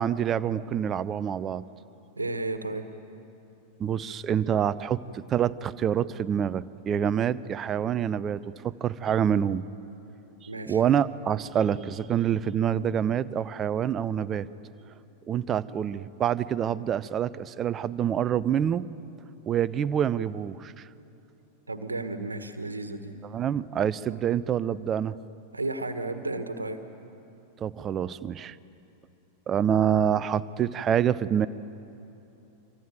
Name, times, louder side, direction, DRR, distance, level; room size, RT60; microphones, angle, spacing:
voice 1, 0.0-1.6 3.8-9.6 10.7-14.5 15.3-18.8 19.5-20.9 23.3-25.2 27.6-28.5 29.5-31.5, right 9 dB, 25° right, 15 dB, 0.7 m, -26 dB
voice 2, 2.2-2.8 10.5-10.8 21.7-23.1 25.5-26.8, right 2 dB, 80° right, 9 dB, 1.5 m, -33 dB
25.5 x 24.5 x 9.3 m, 3.0 s
figure-of-eight pair, 90°, 0 cm